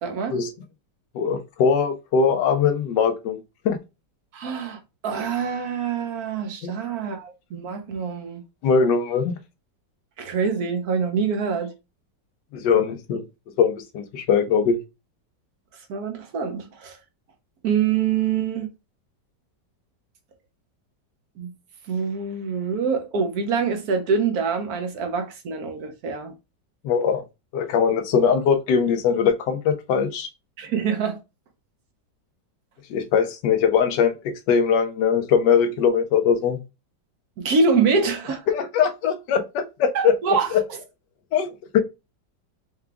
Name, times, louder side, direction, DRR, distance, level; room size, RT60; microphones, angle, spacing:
voice 1, 0.0-0.4 4.3-8.4 10.2-11.7 15.9-17.0 17.6-18.7 21.4-21.5 21.9-26.3 30.6-31.2 37.4-38.5 39.9-40.5, right 5 dB, 65° right, 1.2 m, -25 dB
voice 2, 1.1-3.4 3.6-3.8 6.6-6.7 8.6-9.3 12.5-13.2 13.6-14.8 26.8-27.2 27.5-30.3 32.9-34.1 34.5-36.6 38.5-40.6 41.3-41.8, left 6 dB, 75° left, 1.4 m, -21 dB
4.9 x 2.3 x 3.4 m
omnidirectional pair, 1.9 m